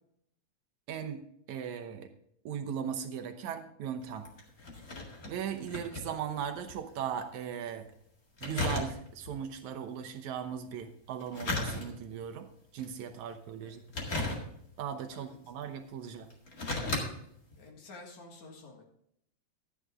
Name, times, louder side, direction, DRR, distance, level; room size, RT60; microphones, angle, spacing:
voice 1, 0.9-1.2 1.5-2.1 2.5-4.3 5.3-7.9 8.4-12.5 12.7-14.1 14.8-16.3, right 8 dB, 75° right, 7 dB, 2.2 m, -38 dB
sound 1, 4.0-6.8 7.1-7.2 8.4-9.3 11.1-12.2 12.8-13.1 13.9-14.8 15.6-15.7 16.3-17.1 17.5-17.6, left 2 dB, 35° left, 2.1 m, -35 dB
voice 2, 13.6-14.1 15.1-15.4 17.6-18.8, left 3 dB, 70° left, 1 dB, 3.2 m, -51 dB
12.5 x 9.6 x 3.6 m, 0.71 s
omnidirectional pair, 3.5 m